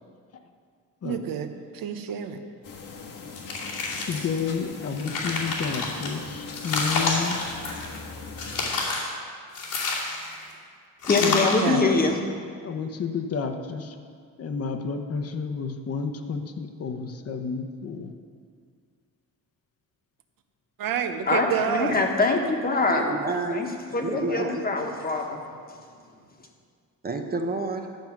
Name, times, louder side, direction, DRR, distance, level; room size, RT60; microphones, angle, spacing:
voice 1, 1.0-1.5 1.7-2.4 11.6-11.9 20.8-22.0, right 8 dB, 80° right, 7 dB, 0.9 m, -28 dB
sound 1, 2.6-8.8, left 4 dB, 70° left, 1.6 m, -40 dB
sound 2, 3.3-4.4 4.8-6.1 6.5-8.0 8.4-9.1 9.5-10.4 11.0-11.7, left 3 dB, 85° left, 2.7 m, -29 dB
voice 2, 4.0-7.4 11.2-11.5 12.6-13.9 14.4-18.1, left 5 dB, 45° left, 6 dB, 0.9 m, -30 dB
voice 3, 11.0-12.2 21.3-23.0 23.5-23.7 23.9-25.4, left 3 dB, 25° left, 2 dB, 1.3 m, -23 dB
voice 4, 22.9-23.7 24.0-24.7 27.0-28.0, right 3 dB, 30° right, 4 dB, 0.7 m, -29 dB
11.5 x 7.5 x 5.9 m, 2.1 s
cardioid pair, 145°, 34 cm